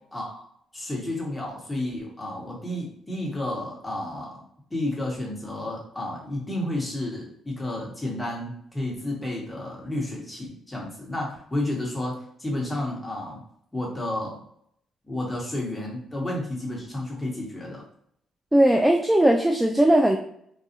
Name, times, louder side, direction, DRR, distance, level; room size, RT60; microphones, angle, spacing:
voice 1, 0.1-0.4 0.7-4.4 4.7-13.4 13.7-14.4 15.1-17.8, left 1 dB, 10° left, -3 dB, 1.3 m, -31 dB
voice 2, 18.5-20.2, right 1 dB, 10° right, 2 dB, 0.3 m, -18 dB
4.0 x 2.3 x 2.7 m, 0.67 s
cardioid pair, 90°, 0 cm